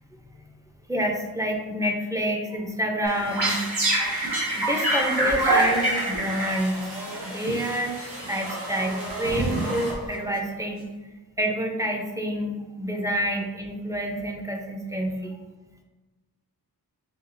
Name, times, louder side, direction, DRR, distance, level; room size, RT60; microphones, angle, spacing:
voice 1, 0.9-3.7 4.6-6.8 7.2-10.9 11.4-15.4, equal, 10° right, 1 dB, 0.5 m, -28 dB
sound 1, 3.0-10.4, right 1 dB, 80° right, 1.2 m, -27 dB
4.5 x 2.4 x 2.5 m, 1.2 s
wide cardioid pair, 70°, 38 cm